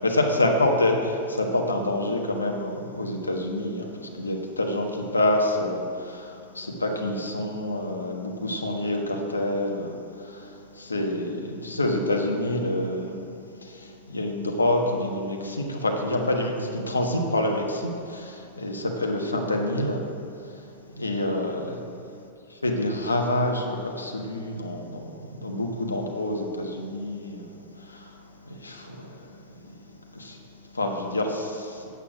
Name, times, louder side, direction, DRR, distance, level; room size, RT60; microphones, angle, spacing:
voice 1, 0.0-13.3 13.6-20.1 20.4-20.6 20.9-21.8 22.6-28.2 28.4-29.4 30.1-30.4 30.7-31.9, left 1 dB, 90° left, 2 dB, 1.3 m, -27 dB
8.3 x 8.2 x 6.0 m, 2.6 s
figure-of-eight pair, 95°, 0 cm